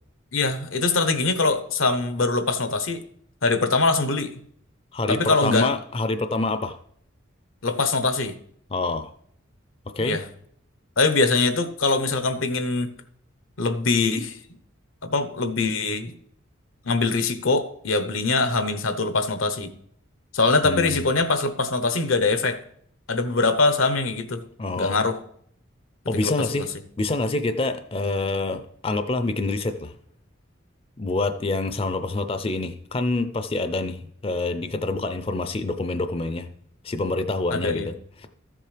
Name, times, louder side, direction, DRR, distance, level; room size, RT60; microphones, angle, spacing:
voice 1, 0.3-3.0 3.4-4.3 5.1-5.7 7.6-8.3 10.0-10.2 11.0-12.9 13.6-14.4 15.0-16.1 16.8-19.7 20.3-22.6 23.1-24.4 24.8-25.2 26.2-26.7 37.5-37.9, left 3 dB, 85° left, 9 dB, 0.9 m, -23 dB
voice 2, 4.9-6.8 8.7-9.1 10.0-10.2 20.6-21.1 24.6-25.0 26.1-26.7 27.0-29.9 31.0-36.5 36.8-37.9, left 2 dB, 30° left, 9 dB, 0.4 m, -26 dB
13.5 x 7.6 x 3.3 m, 0.66 s
head